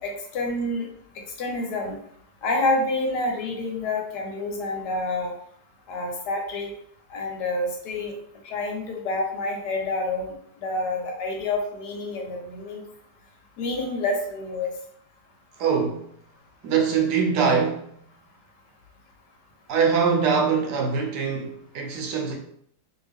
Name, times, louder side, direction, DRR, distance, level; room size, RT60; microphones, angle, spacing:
voice 1, 0.0-0.9 1.4-2.0 2.4-5.3 5.9-6.7 7.1-8.1 8.4-12.8 13.6-14.7, left 2 dB, 85° left, 1.4 m, -28 dB
voice 2, 15.6-16.0 16.6-17.9 19.7-22.4, right 6 dB, 80° right, 1.2 m, -23 dB
2.9 x 2.6 x 3.4 m
omnidirectional pair, 1.8 m